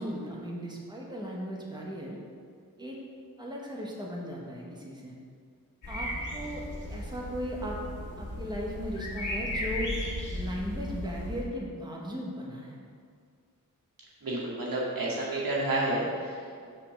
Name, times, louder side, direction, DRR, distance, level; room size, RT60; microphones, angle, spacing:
voice 1, 0.0-2.2 2.8-3.0 3.4-5.2 5.9-6.6 6.9-7.8 8.2-10.0 10.3-12.8, equal, 15° right, -3 dB, 1.3 m, -37 dB
sound 1, 5.8-11.4, left 1 dB, 60° left, 1.7 m, -35 dB
voice 2, 14.2-16.7, right 1 dB, 85° right, -5 dB, 2.0 m, -30 dB
6.4 x 5.5 x 6.6 m, 2.2 s
wide cardioid pair, 110°, 34 cm